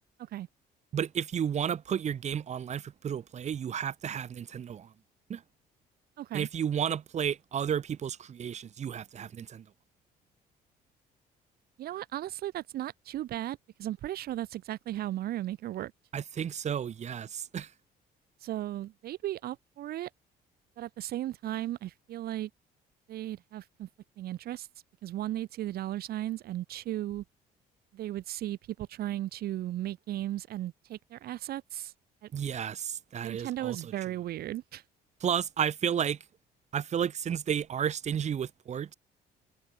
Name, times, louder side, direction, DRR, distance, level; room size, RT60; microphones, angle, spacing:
voice 1, 0.9-4.9 5.3-5.4 6.3-9.6 16.1-17.7 32.3-33.9 35.2-36.2 36.7-38.9, right 8 dB, 40° right, 1.6 m, -32 dB
voice 2, 6.2-6.5 11.8-15.9 18.4-20.1 20.8-22.5 23.1-23.9 24.2-24.7 25.0-27.2 27.9-31.9 32.2-32.3 33.2-34.8, right 13 dB, 65° right, 1.3 m, -36 dB
cardioid pair, 110°, 17 cm